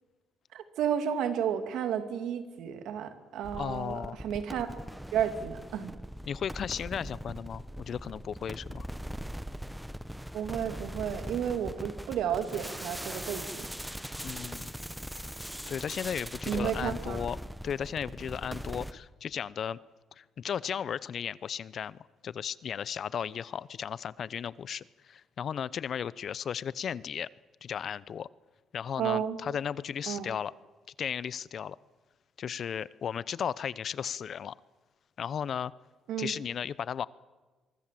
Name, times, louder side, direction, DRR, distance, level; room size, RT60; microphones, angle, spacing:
voice 1, 0.5-4.7 5.1-5.9 10.3-13.7 16.5-17.2 29.0-29.4 30.1-30.3 36.1-36.3, right 9 dB, 85° right, 8 dB, 2.7 m, -32 dB
sound 1, 3.4-18.9, equal, 5° right, 1.2 m, -40 dB
voice 2, 3.5-4.2 6.3-8.9 14.2-14.7 15.7-17.4 17.6-19.8 20.2-27.3 27.6-28.3 28.7-30.5 31.0-31.8 32.4-34.5 35.2-35.7 36.2-37.1, left 8 dB, 60° left, 20 dB, 0.8 m, -35 dB
25.0 x 23.0 x 7.7 m, 1.3 s
cardioid pair, 90°, 0 cm